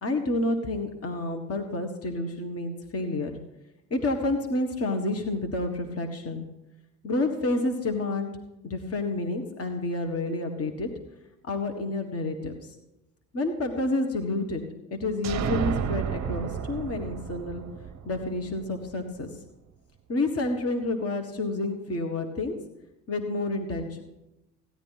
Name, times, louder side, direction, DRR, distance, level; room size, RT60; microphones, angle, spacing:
voice 1, 0.0-3.3 3.9-6.5 7.0-8.3 8.6-10.9 11.4-12.5 13.3-14.6 14.9-17.6 18.0-19.3 20.1-22.5 23.1-24.0, left 2 dB, 30° left, 5 dB, 1.7 m, -29 dB
sound 1, 15.2-18.9, right 8 dB, 35° right, 0.8 m, -32 dB
16.0 x 11.0 x 4.2 m, 0.94 s
figure-of-eight pair, 55°, 50 cm